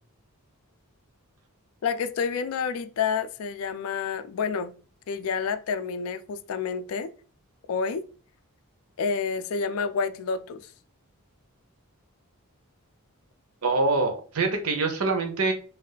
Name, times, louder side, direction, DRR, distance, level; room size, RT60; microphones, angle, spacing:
voice 1, 1.8-4.7 5.1-7.1 7.7-8.0 9.0-10.7, left 5 dB, 65° left, 0.3 m, -29 dB
voice 2, 13.6-15.5, right 3 dB, 75° right, 0.7 m, -24 dB
2.5 x 2.3 x 3.9 m
head